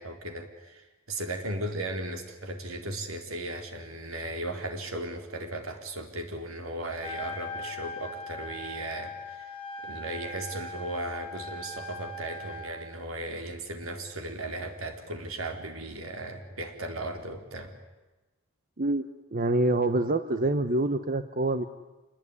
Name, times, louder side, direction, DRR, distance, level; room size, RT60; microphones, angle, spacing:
voice 1, 0.0-9.5 9.8-17.8, right 1 dB, 85° right, 5 dB, 3.8 m, -36 dB
Trumpet, 6.9-12.7, left 2 dB, 25° left, 4.0 m, -40 dB
voice 2, 18.8-21.6, right 2 dB, 40° right, 11 dB, 1.0 m, -26 dB
27.0 x 20.5 x 9.9 m, 1.2 s
head